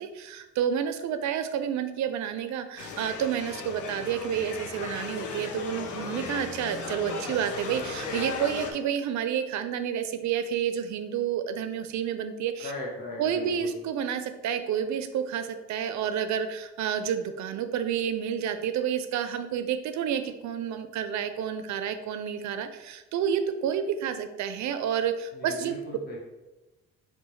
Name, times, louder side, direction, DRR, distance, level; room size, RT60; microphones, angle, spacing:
voice 1, 0.0-12.7 13.2-25.7, right 8 dB, 70° right, 9 dB, 0.5 m, -30 dB
sound 1, 2.8-8.7, left 5 dB, 75° left, 0.6 m, -36 dB
voice 2, 12.6-13.7 25.3-26.2, left 2 dB, 30° left, -3 dB, 0.9 m, -38 dB
4.8 x 2.2 x 3.1 m, 1.1 s
cardioid pair, 90°, 30 cm